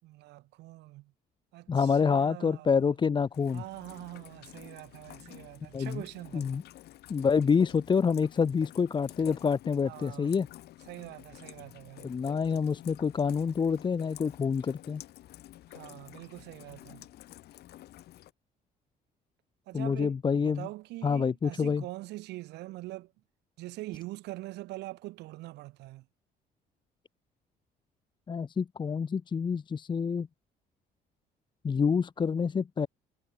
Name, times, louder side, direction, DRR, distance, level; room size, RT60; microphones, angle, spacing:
voice 1, 0.0-1.1 1.5-2.9 3.5-6.5 9.8-10.4 10.9-12.1 15.7-17.1 19.7-23.1 23.6-26.1, right 18 dB, 85° right, 7.4 m, -44 dB
voice 2, 1.7-3.6 5.7-6.0 6.3-6.6 7.1-10.5 12.0-15.0 19.7-20.7 21.0-21.8 28.3-30.3 31.6-32.9, left 6 dB, 25° left, 0.8 m, -27 dB
Rain, 3.3-18.3, left 15 dB, 75° left, 3.5 m, -50 dB
cardioid pair, 110°, 17 cm